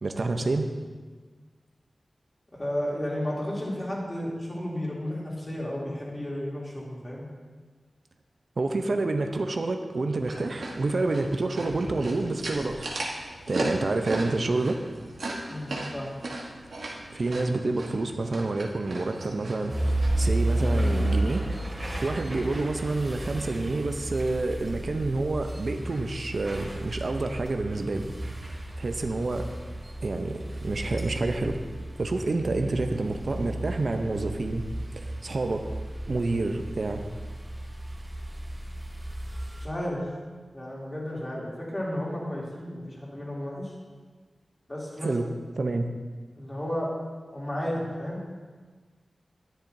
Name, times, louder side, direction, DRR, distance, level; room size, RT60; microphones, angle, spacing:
voice 1, 0.0-0.7 8.6-13.0 13.5-14.8 17.1-21.4 22.0-28.1 28.5-29.7 30.0-31.6 32.0-34.6 34.9-35.6 36.1-37.0 45.0-45.3 45.6-45.9, right 2 dB, 65° right, 5 dB, 0.6 m, -28 dB
voice 2, 2.6-7.2 15.5-16.1 39.6-40.1 40.5-43.7 44.7-45.1 46.4-46.9 47.3-48.2, left 1 dB, 30° left, -5 dB, 2.8 m, -33 dB
sound 1, 10.2-20.3, right 2 dB, 85° right, 1.3 m, -36 dB
sound 2, 19.7-39.7, right 1 dB, 25° right, 2.2 m, -32 dB
10.5 x 10.0 x 2.7 m, 1.4 s
wide cardioid pair, 70°, 0 cm